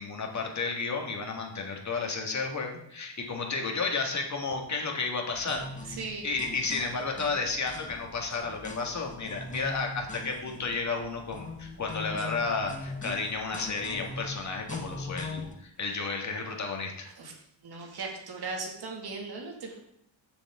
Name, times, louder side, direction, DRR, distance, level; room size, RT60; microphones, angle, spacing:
voice 1, 0.0-6.0 6.2-17.1, left 4 dB, 35° left, 1 dB, 2.0 m, -32 dB
sound 1, 5.3-15.5, left 3 dB, 15° left, 1.3 m, -41 dB
voice 2, 5.9-6.3 17.2-17.3 17.6-19.8, right 3 dB, 55° right, 0 dB, 2.3 m, -38 dB
16.0 x 7.2 x 3.7 m, 0.72 s
wide cardioid pair, 165°, 47 cm